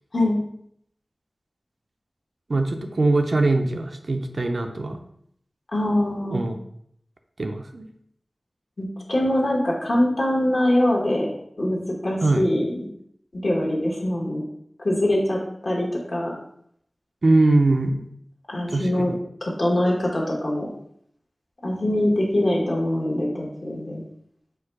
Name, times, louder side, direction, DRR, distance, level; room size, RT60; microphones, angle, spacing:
voice 1, 2.5-5.0 6.3-6.6 7.4-7.9 12.2-12.5 17.2-18.0 18.7-19.1, right 2 dB, 65° right, 5 dB, 0.4 m, -22 dB
voice 2, 5.7-6.4 8.8-11.3 11.6-12.7 13.3-14.4 14.8-16.3 18.5-19.1 19.4-20.7 21.6-24.0, left 1 dB, 60° left, -2 dB, 1.2 m, -23 dB
4.6 x 2.2 x 4.5 m, 0.70 s
wide cardioid pair, 55°, 0 cm